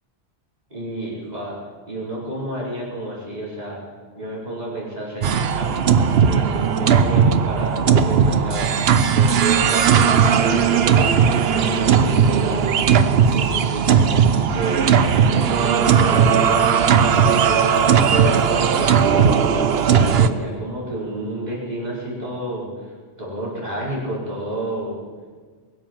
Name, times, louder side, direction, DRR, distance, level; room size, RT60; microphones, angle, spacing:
voice 1, 0.7-1.6 1.9-3.8 4.1-14.9 15.2-19.5 19.9-22.7 23.2-25.0, right 1 dB, 40° right, -7 dB, 5.2 m, -30 dB
sound 1, 5.2-20.3, right 7 dB, 70° right, 1.0 m, -17 dB
22.5 x 7.8 x 7.3 m, 1.6 s
omnidirectional pair, 1.1 m